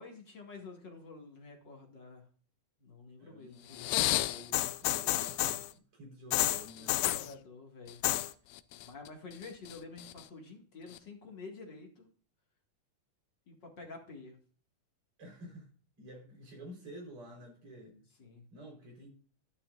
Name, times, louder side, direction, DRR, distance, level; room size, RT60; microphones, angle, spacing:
voice 1, 0.0-2.2 2.8-4.0 6.8-8.0 8.8-12.1 13.5-14.4 17.8-18.4, left 3 dB, 40° left, 1 dB, 2.0 m, -49 dB
voice 2, 3.2-7.3 15.2-15.7 16.0-17.9 18.5-19.1, right 1 dB, 35° right, 1 dB, 4.8 m, -50 dB
sound 1, 3.7-5.7 6.3-7.3 7.9-8.3 8.6-9.1 9.4-10.2 11.0-11.1, left 15 dB, 85° left, 1.8 m, -31 dB
11.5 x 11.5 x 2.5 m, 0.42 s
omnidirectional pair, 4.2 m